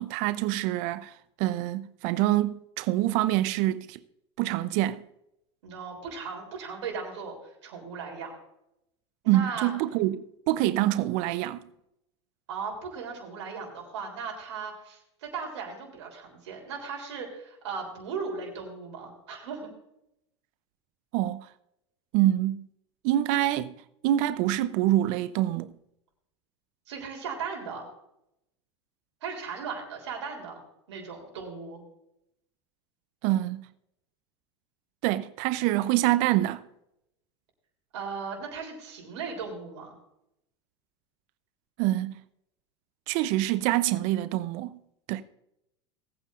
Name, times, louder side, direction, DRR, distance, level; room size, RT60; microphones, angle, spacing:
voice 1, 0.0-4.0 4.4-5.0 9.3-11.7 21.1-21.5 22.1-22.7 23.0-23.7 24.0-25.7 33.2-33.7 35.0-36.6 41.8-42.1 43.1-44.8 45.1-45.2, right 14 dB, 60° right, 0.7 m, -26 dB
voice 2, 5.6-7.4 7.6-8.4 9.2-9.7 12.5-19.7 26.9-27.9 29.2-30.6 30.9-31.8 37.9-39.9, right 5 dB, 75° right, 3.5 m, -37 dB
19.0 x 9.0 x 2.5 m
hypercardioid pair, 90°, 15 cm